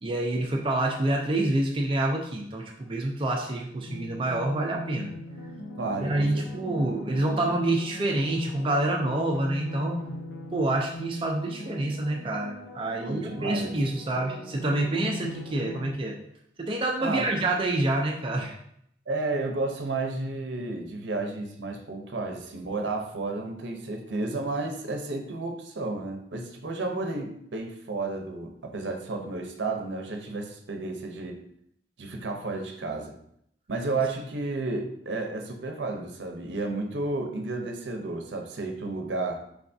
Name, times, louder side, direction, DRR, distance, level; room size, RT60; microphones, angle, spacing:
voice 1, 0.0-5.1 6.0-10.0 10.5-16.2 16.6-18.5, right 2 dB, 30° right, 0 dB, 0.4 m, -27 dB
sound 1, 3.9-15.9, left 1 dB, 80° left, 0.6 m, -40 dB
voice 2, 5.8-6.5 6.7-6.8 13.0-13.8 17.0-17.3 19.1-31.4 32.0-33.2 33.7-39.4, right 3 dB, 75° right, 4 dB, 0.6 m, -32 dB
4.7 x 3.4 x 2.6 m, 0.71 s
head